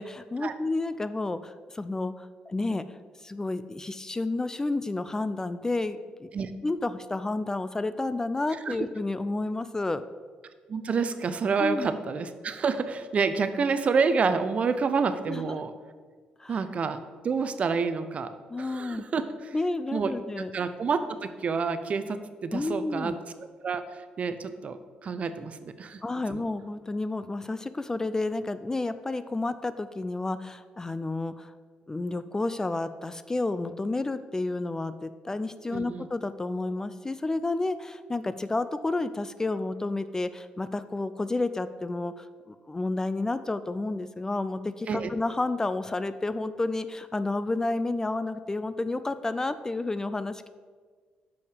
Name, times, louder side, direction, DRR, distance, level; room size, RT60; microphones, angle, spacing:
voice 1, 0.0-2.8 3.2-6.3 6.6-10.0 11.6-11.9 15.3-15.6 16.4-16.6 18.5-19.0 19.5-20.5 22.5-23.2 26.0-31.5 31.9-50.5, left 2 dB, 20° left, 13 dB, 0.3 m, -31 dB
voice 2, 10.7-15.7 16.5-18.3 18.6-19.5 19.9-23.2 23.6-26.0 26.3-26.4 35.7-36.1 44.9-45.1, right 5 dB, 45° right, 11 dB, 0.6 m, -28 dB
6.4 x 5.5 x 5.0 m, 1.6 s
cardioid pair, 75°, 3 cm